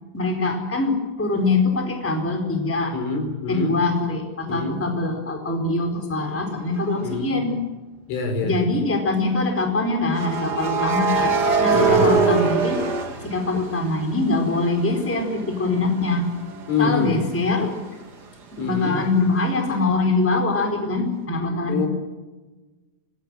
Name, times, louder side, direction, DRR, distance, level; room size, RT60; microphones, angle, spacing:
voice 1, 0.1-3.0 3.5-7.6 8.4-12.8 13.2-16.3 16.8-17.8 18.6-21.8, left 3 dB, 5° left, 3 dB, 3.5 m, -23 dB
voice 2, 2.9-3.8 4.5-4.8 7.0-7.4 8.1-8.6 11.7-12.2 16.7-17.2 18.6-19.0 21.7-21.9, left 4 dB, 75° left, 6 dB, 6.5 m, -25 dB
sound 1, 6.8-7.0 10.1-14.0 14.4-18.0, right 5 dB, 85° right, 0.8 m, -24 dB
26.5 x 20.0 x 7.5 m, 1.2 s
omnidirectional pair, 5.6 m